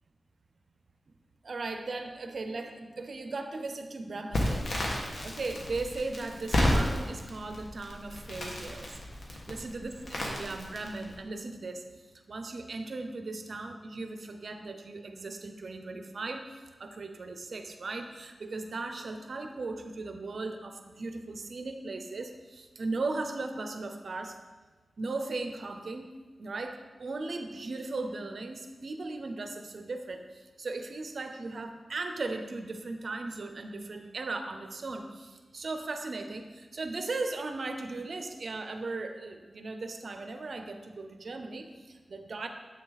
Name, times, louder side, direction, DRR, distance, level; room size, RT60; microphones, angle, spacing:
voice 1, 1.4-4.7 5.2-9.0 9.5-24.4 25.0-42.5, right 3 dB, 60° right, 6 dB, 0.6 m, -37 dB
Crackle, 4.3-11.1, left 1 dB, 70° left, 1.6 m, -32 dB
7.9 x 6.4 x 4.0 m, 1.3 s
wide cardioid pair, 95°, 0 cm